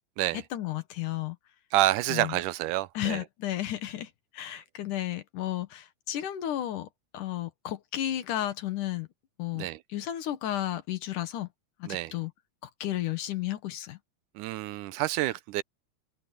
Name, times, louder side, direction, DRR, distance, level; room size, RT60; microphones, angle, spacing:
voice 1, 0.3-1.4 2.1-2.4 2.9-6.9 7.1-9.1 9.4-11.5 11.8-12.3 12.8-14.0, left 13 dB, 80° left, 2.9 m, -33 dB
voice 2, 1.7-3.2 9.5-9.8 11.9-12.1 14.4-15.6, right 16 dB, 85° right, 2.2 m, -28 dB
open air
omnidirectional pair, 3.6 m